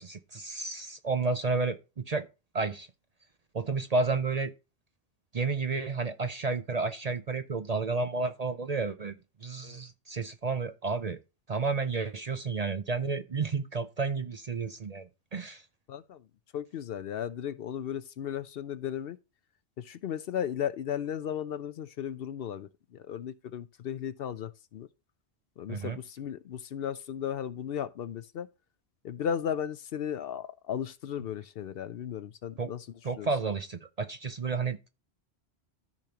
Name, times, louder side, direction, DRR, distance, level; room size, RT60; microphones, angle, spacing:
voice 1, 0.0-1.8 2.1-2.3 2.5-2.9 3.5-4.5 5.3-9.1 9.4-11.2 11.5-15.6 25.7-26.0 32.6-32.7 33.0-34.9, right 4 dB, 45° right, 0.6 m, -31 dB
voice 2, 15.9-16.2 16.5-19.2 19.8-24.9 25.6-28.5 29.0-32.9 33.2-33.3, left 9 dB, 65° left, 0.7 m, -35 dB
13.5 x 5.2 x 2.9 m
omnidirectional pair, 1.2 m